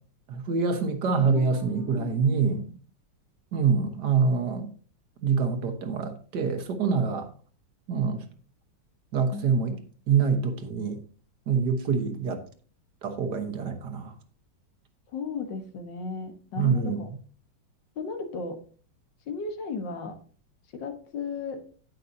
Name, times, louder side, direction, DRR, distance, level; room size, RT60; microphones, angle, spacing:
voice 1, 0.3-2.6 3.5-4.7 5.2-7.3 7.9-8.2 9.1-9.8 10.1-11.0 11.5-12.4 13.0-14.1 16.6-17.1, right 5 dB, 65° right, 1.7 m, -25 dB
voice 2, 1.1-2.7 9.3-9.8 15.1-17.1 18.0-18.6 19.3-20.2 20.7-21.6, left 4 dB, 75° left, 2.0 m, -35 dB
17.0 x 5.8 x 2.7 m
omnidirectional pair, 2.0 m